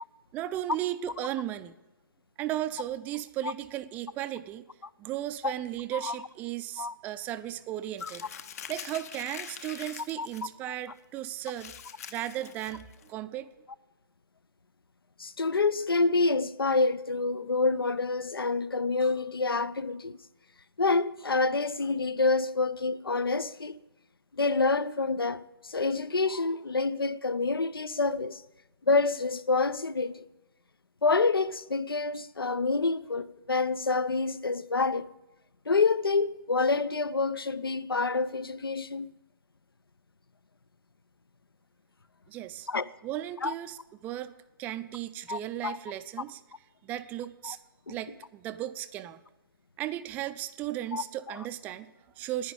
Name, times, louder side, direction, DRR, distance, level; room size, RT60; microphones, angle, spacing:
voice 1, 0.3-1.8 2.4-4.6 5.0-8.3 8.7-11.7 12.1-13.5 42.3-42.7 43.0-44.3 44.6-46.4 46.8-47.6 47.9-49.2 49.8-52.5, right 13 dB, 15° right, 0.4 m, -35 dB
Crumpling crinkling, 8.0-10.4 10.8-11.0 11.4-13.1, left 8 dB, 40° left, 0.8 m, -44 dB
voice 2, 15.2-20.2 20.8-23.8 24.4-28.4 28.9-30.2 31.0-35.1 35.7-39.1 42.7-42.8 43.4-43.5 45.3-45.8 47.4-47.6 47.9-48.0 50.9-51.4, left 3 dB, 75° left, 0.7 m, -27 dB
11.0 x 10.0 x 8.5 m
figure-of-eight pair, 135°, 12 cm